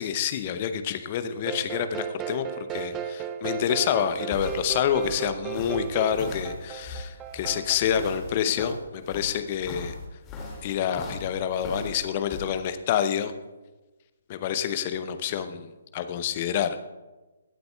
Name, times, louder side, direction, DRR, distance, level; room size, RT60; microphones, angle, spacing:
voice 1, 0.0-10.0 10.6-13.3 14.3-16.8, left 9 dB, 35° left, 10 dB, 0.7 m, -28 dB
sound 1, 1.5-7.8, right 9 dB, 15° right, 0.4 m, -35 dB
sound 2, 3.9-12.5, left 2 dB, 20° left, 2.2 m, -39 dB
21.5 x 7.8 x 2.3 m, 1.2 s
figure-of-eight pair, 135°, 0 cm